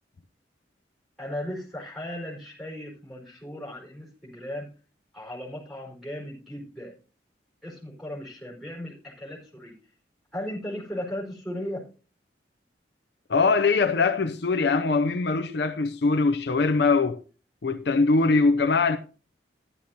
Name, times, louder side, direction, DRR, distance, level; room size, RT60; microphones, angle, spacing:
voice 1, 1.2-4.7 5.1-6.9 7.6-9.8 10.3-11.9, left 1 dB, ahead, 4.5 m, -36 dB
voice 2, 13.3-17.2 17.6-19.0, left 4 dB, 65° left, 0.5 m, -22 dB
13.0 x 11.0 x 2.8 m
head